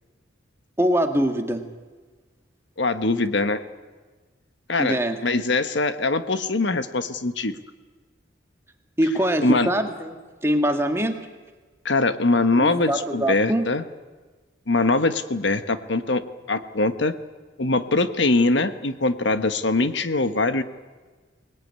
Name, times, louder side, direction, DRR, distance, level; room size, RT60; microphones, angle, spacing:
voice 1, 0.8-1.6 4.8-5.1 9.0-11.2 12.6-13.6, equal, 15° right, 5 dB, 1.7 m, -23 dB
voice 2, 2.8-3.6 4.7-7.6 9.4-9.7 11.8-13.8 14.7-16.2 16.5-17.1 17.6-20.6, left 2 dB, 70° left, 11 dB, 1.2 m, -22 dB
24.0 x 19.5 x 9.6 m, 1.3 s
head